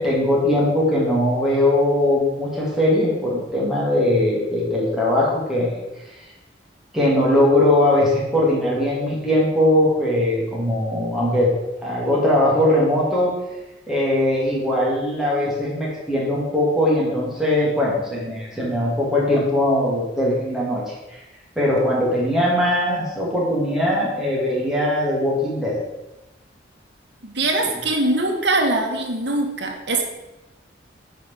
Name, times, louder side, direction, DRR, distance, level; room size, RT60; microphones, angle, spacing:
voice 1, 0.0-5.8 6.1-6.2 6.9-11.5 11.8-13.3 13.9-21.2 21.5-25.8, left 1 dB, 5° right, -6 dB, 3.1 m, -20 dB
voice 2, 27.2-30.0, right 2 dB, 70° right, 2 dB, 1.8 m, -22 dB
9.5 x 5.2 x 6.6 m, 0.99 s
head